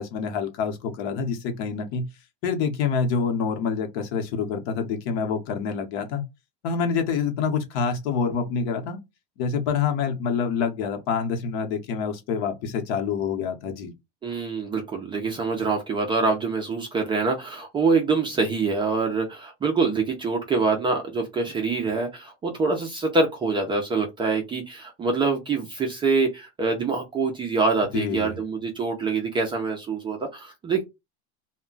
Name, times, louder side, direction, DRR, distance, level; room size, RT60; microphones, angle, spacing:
voice 1, 0.0-2.1 2.4-6.2 6.6-9.0 9.4-13.9 27.9-28.4, left 6 dB, 60° left, 0.9 m, -27 dB
voice 2, 14.2-30.8, right 4 dB, 15° right, 0.4 m, -25 dB
2.2 x 2.1 x 3.8 m
supercardioid pair, 145°, 34 cm